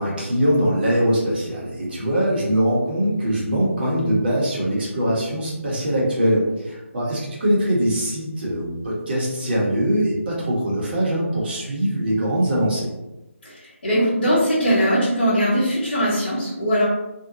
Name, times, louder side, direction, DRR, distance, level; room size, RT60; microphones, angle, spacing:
voice 1, 0.0-12.9, equal, 45° right, -5 dB, 1.1 m, -22 dB
voice 2, 13.4-16.8, equal, 40° left, -9 dB, 0.9 m, -20 dB
2.7 x 2.2 x 2.7 m, 0.97 s
figure-of-eight pair, 155°, 8 cm